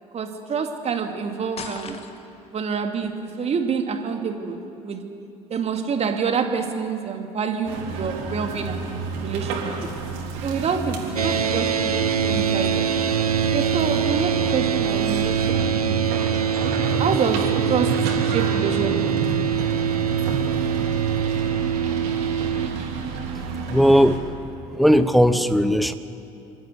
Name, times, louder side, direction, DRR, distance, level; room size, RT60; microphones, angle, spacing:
voice 1, 0.1-2.0 2.5-5.0 5.5-8.8 9.2-9.9 10.4-12.9 13.5-16.3 17.0-19.1, right 6 dB, 35° right, 4 dB, 2.5 m, -27 dB
sound 1, 1.6-2.5, left 5 dB, 35° left, 1.8 m, -37 dB
sound 2, 7.7-24.2, right 4 dB, 60° right, 3.6 m, -29 dB
sound 3, 11.2-22.7, right 8 dB, 85° right, 0.6 m, -24 dB
voice 2, 23.5-24.2 24.6-25.9, equal, ahead, 11 dB, 1.1 m, -18 dB
26.0 x 13.5 x 8.2 m, 2.7 s
figure-of-eight pair, 60°, 19 cm